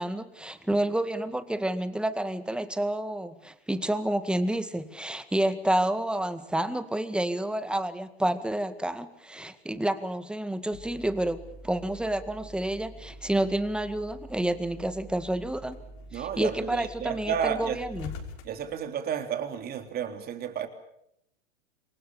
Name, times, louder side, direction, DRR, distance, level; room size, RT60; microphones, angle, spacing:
voice 1, 0.0-15.8 16.1-18.1, right 1 dB, 5° right, 1.9 m, -29 dB
sound 1, 10.7-18.8, left 1 dB, 50° left, 6.1 m, -45 dB
voice 2, 16.1-17.8 18.4-20.7, right 8 dB, 30° right, 3.6 m, -32 dB
28.0 x 23.5 x 7.2 m
hypercardioid pair, 115°, 32 cm